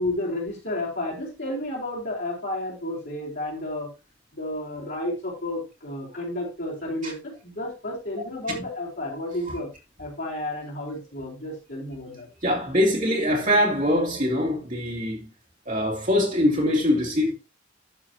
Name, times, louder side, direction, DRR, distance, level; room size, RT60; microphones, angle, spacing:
voice 1, 0.0-3.9 4.3-9.7 10.0-12.3, left 1 dB, 55° left, 4.4 m, -31 dB
voice 2, 12.4-15.2 15.7-17.3, left 1 dB, 40° right, 2.8 m, -23 dB
11.5 x 6.9 x 2.9 m
head